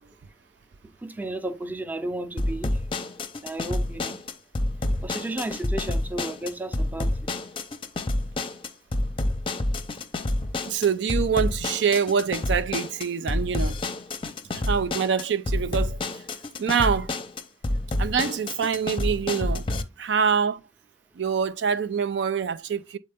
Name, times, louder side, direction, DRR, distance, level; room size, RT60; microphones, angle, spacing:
voice 1, 1.0-2.8 3.4-4.2 5.0-7.3, right 1 dB, 10° right, 0.6 m, -33 dB
sound 1, 2.4-19.8, left 1 dB, 30° left, 0.6 m, -28 dB
voice 2, 10.7-13.8 14.5-16.2 16.6-17.1 18.0-19.7 20.0-20.6 21.2-23.0, right 6 dB, 75° right, 0.4 m, -25 dB
7.6 x 4.3 x 3.4 m
head